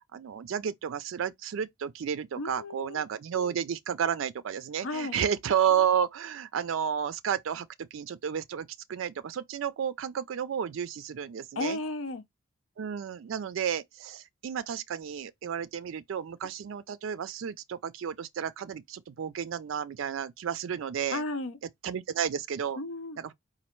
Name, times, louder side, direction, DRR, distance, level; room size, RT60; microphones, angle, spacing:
voice 1, 0.1-11.8 12.8-21.2 21.8-22.8 23.2-23.3, right 8 dB, 75° right, 0.4 m, -32 dB
voice 2, 2.4-3.0 4.8-5.2 11.6-12.2 21.1-21.6 22.8-23.2, left 2 dB, 85° left, 0.7 m, -34 dB
4.2 x 2.5 x 4.3 m
head